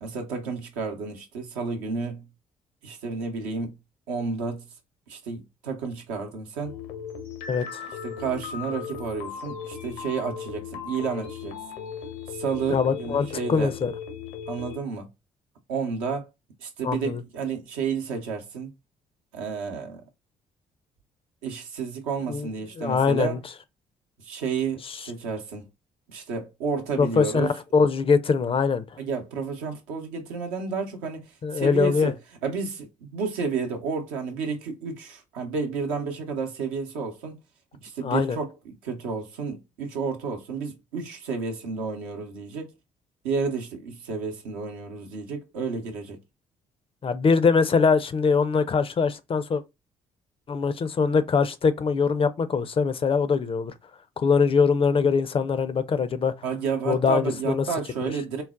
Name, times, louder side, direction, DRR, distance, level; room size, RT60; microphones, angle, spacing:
voice 1, 0.0-2.3 2.8-3.8 4.1-4.6 5.1-6.8 8.0-11.6 12.3-13.7 14.5-15.1 15.7-16.3 16.6-18.7 19.3-20.0 21.4-23.4 24.2-25.7 26.1-27.5 29.0-32.2 32.4-37.4 37.8-42.7 43.2-46.2 56.4-58.4, right 5 dB, 80° right, 0.7 m, -31 dB
sound 1, 6.6-14.8, left 7 dB, 70° left, 0.6 m, -37 dB
voice 2, 7.5-7.8 12.7-13.9 16.8-17.2 22.3-22.5 22.8-23.4 24.9-25.0 27.0-28.8 31.4-32.1 38.0-38.4 47.0-49.6 50.5-53.7 54.2-56.3 56.9-57.6 58.0-58.1, left 5 dB, 35° left, 0.4 m, -22 dB
3.8 x 2.0 x 2.3 m
hypercardioid pair, 45°, 17 cm